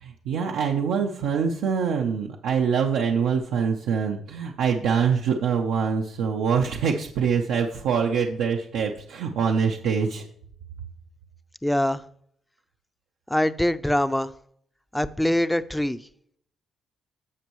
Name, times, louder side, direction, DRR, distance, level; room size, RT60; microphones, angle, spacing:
voice 1, 0.0-10.3, right 6 dB, 90° right, 1 dB, 0.7 m, -24 dB
voice 2, 11.6-12.0 13.3-14.3 14.9-16.0, left 1 dB, 5° left, 13 dB, 0.5 m, -23 dB
15.0 x 5.4 x 3.1 m, 0.65 s
cardioid pair, 90°, 0 cm